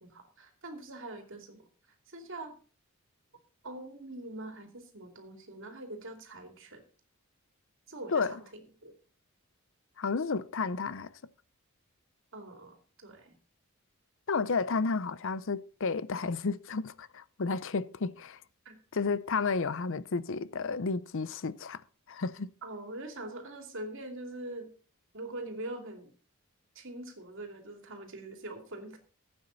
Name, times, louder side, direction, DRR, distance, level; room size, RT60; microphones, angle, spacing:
voice 1, 0.0-1.7 2.1-2.6 3.6-6.8 7.9-8.9 12.3-13.3 18.6-18.8 22.6-24.7 25.1-26.1 26.7-29.0, right 2 dB, 60° right, 2.8 m, -43 dB
voice 2, 10.0-11.1 14.3-18.4 18.9-21.8 22.1-22.5, left 4 dB, 60° left, 0.6 m, -32 dB
16.0 x 8.8 x 4.1 m
head